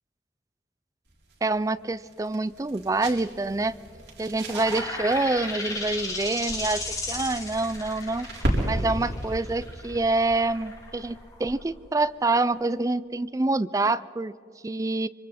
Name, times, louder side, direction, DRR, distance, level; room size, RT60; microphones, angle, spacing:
sound 1, 1.1-11.7, right 1 dB, 75° right, 4.4 m, -35 dB
voice 1, 1.4-3.7 4.2-8.3 8.6-14.3 14.6-15.1, right 2 dB, 20° right, 16 dB, 0.4 m, -26 dB
sound 2, 4.4-11.8, left 2 dB, 20° left, 2.6 m, -35 dB
26.0 x 24.5 x 4.2 m, 2.5 s
head